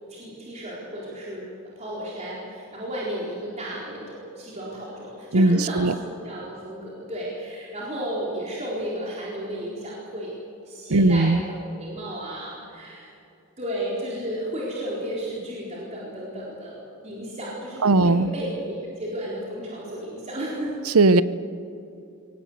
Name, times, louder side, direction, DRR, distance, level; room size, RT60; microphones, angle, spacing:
voice 1, 0.1-1.5 1.8-10.3 10.6-13.1 13.6-20.8, equal, 30° right, -5 dB, 4.2 m, -33 dB
voice 2, 5.3-5.9 10.9-11.4 17.8-18.3 20.9-21.2, right 2 dB, 90° right, 15 dB, 0.8 m, -18 dB
23.5 x 18.0 x 8.2 m, 2.7 s
head